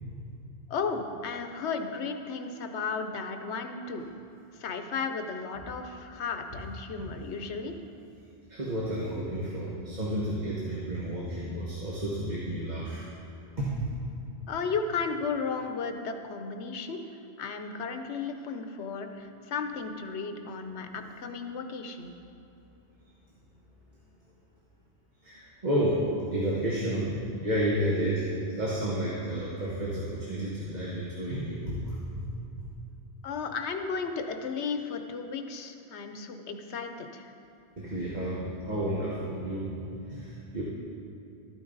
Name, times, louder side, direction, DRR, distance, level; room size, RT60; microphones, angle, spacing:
voice 1, 0.7-4.1 4.6-7.7 14.5-17.0 17.4-22.1 33.2-37.3, left 5 dB, 85° left, 7 dB, 1.0 m, -34 dB
voice 2, 8.5-13.0 13.6-13.9 25.2-28.3 28.5-32.3 32.6-32.7 37.8-39.8 40.1-40.6, right 1 dB, 40° right, -6 dB, 1.4 m, -31 dB
12.5 x 9.1 x 3.9 m, 2.8 s
omnidirectional pair, 1.1 m